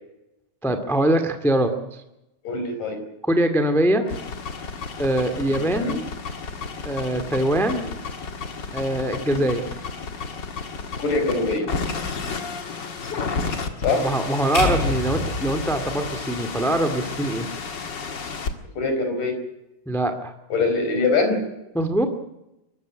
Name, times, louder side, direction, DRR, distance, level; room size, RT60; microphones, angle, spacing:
voice 1, 0.6-2.0 3.2-4.0 5.0-6.0 6.8-7.9 8.7-9.6 14.0-17.5 19.8-20.3 21.7-22.0, right 1 dB, ahead, 8 dB, 1.2 m, -23 dB
voice 2, 2.4-3.0 5.5-6.0 7.7-7.8 9.2-9.4 11.0-11.7 13.8-14.1 18.8-19.4 20.5-21.4, left 3 dB, 70° left, 6 dB, 6.2 m, -23 dB
sound 1, 4.0-18.5, left 4 dB, 40° left, 2.1 m, -32 dB
sound 2, 14.5-16.8, left 2 dB, 15° left, 6.8 m, -27 dB
23.5 x 14.5 x 9.9 m, 0.90 s
omnidirectional pair, 3.8 m